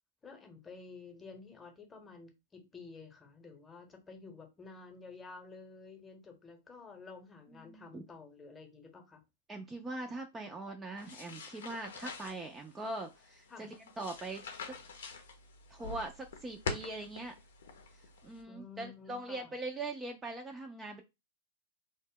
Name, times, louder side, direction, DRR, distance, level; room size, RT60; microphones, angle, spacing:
voice 1, 0.2-9.2 13.5-13.7 18.5-19.5, left 4 dB, 15° left, 0.8 m, -51 dB
voice 2, 7.5-8.0 9.5-14.7 15.7-17.3 18.2-21.0, right 2 dB, 15° right, 0.4 m, -42 dB
sound 1, 11.0-18.4, left 4 dB, 75° left, 0.6 m, -45 dB
2.0 x 2.0 x 3.7 m
hypercardioid pair, 115°, 0 cm